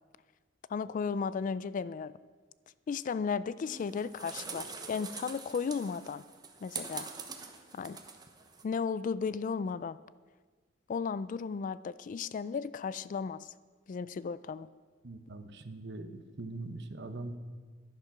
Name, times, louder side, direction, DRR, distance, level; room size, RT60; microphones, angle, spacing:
voice 1, 0.7-2.1 2.9-6.2 6.6-7.1 7.7-8.0 8.6-10.0 10.9-13.5 13.9-14.7, left 5 dB, 40° left, 17 dB, 0.3 m, -35 dB
sound 1, 3.6-8.6, right 5 dB, 20° right, 0.9 m, -44 dB
voice 2, 15.0-17.4, right 2 dB, 60° right, 9 dB, 0.9 m, -42 dB
11.0 x 10.5 x 5.8 m, 1.4 s
head